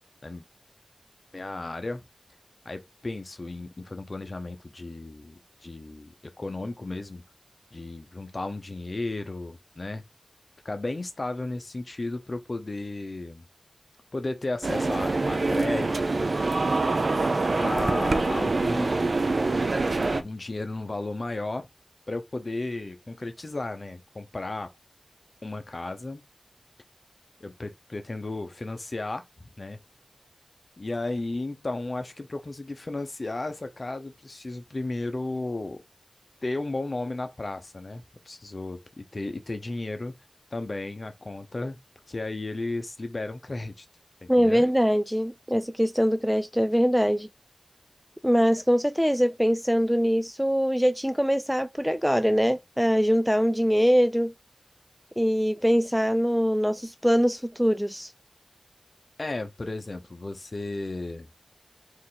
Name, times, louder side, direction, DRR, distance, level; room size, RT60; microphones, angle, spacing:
voice 1, 1.3-2.0 2.6-5.3 5.6-7.2 7.7-10.0 10.6-13.5 14.1-16.3 17.6-19.2 20.1-21.7 22.1-24.7 25.4-26.2 27.4-29.8 30.8-35.8 36.4-40.1 40.5-41.8 42.1-43.9 44.2-44.7 59.2-61.3, left 2 dB, 55° left, 0.9 m, -34 dB
sound 1, 14.6-20.2, right 3 dB, 70° right, 0.5 m, -25 dB
voice 2, 44.3-47.3 48.2-54.3 55.2-58.1, equal, ahead, 0.3 m, -23 dB
4.5 x 2.7 x 3.9 m
wide cardioid pair, 50°, 0 cm